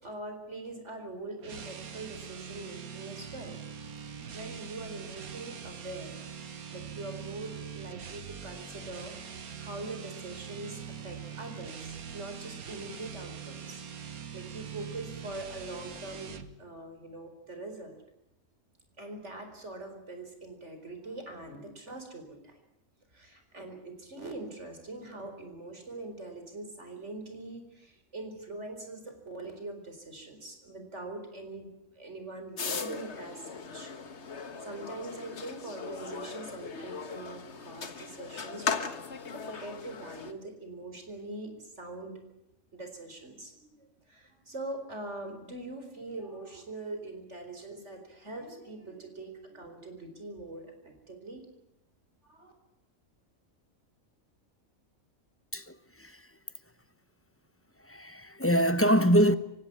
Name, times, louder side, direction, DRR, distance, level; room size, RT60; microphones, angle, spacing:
voice 1, 0.0-3.6 3.8-6.2 6.7-13.8 14.1-18.0 19.0-22.6 23.1-31.7 31.9-33.9 34.6-42.1 42.7-51.4 52.2-52.5, right 2 dB, 55° right, 4.7 m, -43 dB
sound 1, 1.4-16.5, right 7 dB, 90° right, 1.9 m, -43 dB
sound 2, 32.6-40.3, left 5 dB, 55° left, 1.7 m, -38 dB
voice 2, 55.5-56.3 57.8-59.4, equal, 10° left, 0.9 m, -24 dB
26.5 x 16.0 x 9.8 m
omnidirectional pair, 1.5 m